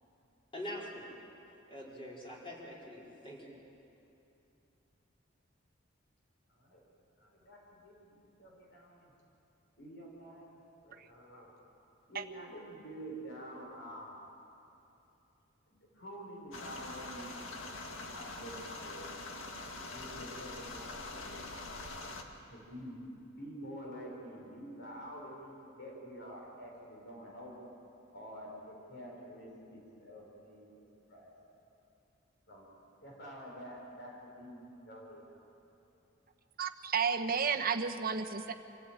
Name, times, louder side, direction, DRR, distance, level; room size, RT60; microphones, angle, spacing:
voice 1, 0.5-1.0 1.7-3.5, left 1 dB, 25° left, -4 dB, 4.9 m, -44 dB
voice 2, 6.5-6.8 7.2-9.1 9.8-11.5 12.1-14.2 15.9-17.3 18.2-18.5 18.8-19.1 19.9-21.3 22.5-27.7 28.1-31.3 32.5-32.6 33.0-35.4, equal, 60° left, -2 dB, 5.5 m, -48 dB
sound 1, 16.5-22.2, left 2 dB, 80° left, 1.9 m, -44 dB
voice 3, 36.6-38.5, right 6 dB, 50° right, 6 dB, 1.1 m, -32 dB
26.0 x 16.0 x 9.0 m, 2.9 s
head